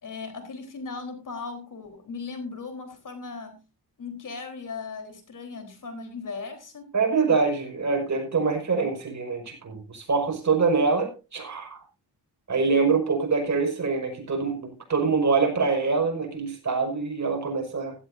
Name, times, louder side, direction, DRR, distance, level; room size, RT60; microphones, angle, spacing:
voice 1, 0.0-3.6 4.0-6.9, left 4 dB, 50° left, 6 dB, 4.0 m, -37 dB
voice 2, 6.9-11.8 12.5-17.9, right 4 dB, 45° right, 3 dB, 5.6 m, -25 dB
16.0 x 13.0 x 2.7 m, 0.30 s
cardioid pair, 80°, 39 cm